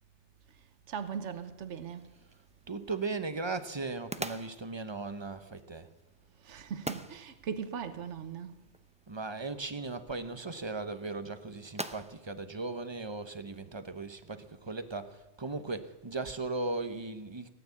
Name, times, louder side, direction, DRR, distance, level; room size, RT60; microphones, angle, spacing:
voice 1, 0.9-2.1 6.4-8.6, right 7 dB, 75° right, 1.3 m, -39 dB
sound 1, 1.9-13.6, right 1 dB, 10° right, 0.5 m, -47 dB
voice 2, 2.7-5.9 9.1-17.5, right 3 dB, 25° right, 1.0 m, -37 dB
18.0 x 9.3 x 8.4 m
omnidirectional pair, 1.2 m